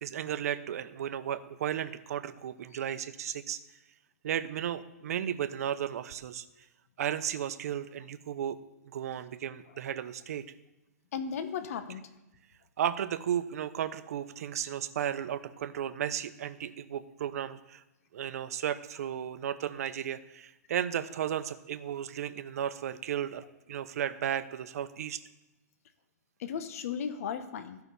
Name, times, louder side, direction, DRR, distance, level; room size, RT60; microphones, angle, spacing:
voice 1, 0.0-3.6 4.2-6.4 7.0-8.6 8.8-10.4 12.8-17.8 18.1-25.2, right 10 dB, 65° right, 12 dB, 0.8 m, -34 dB
voice 2, 11.1-12.0 26.4-27.8, left 7 dB, 60° left, 9 dB, 1.0 m, -35 dB
13.5 x 5.9 x 6.9 m, 0.98 s
hypercardioid pair, 150°, 9 cm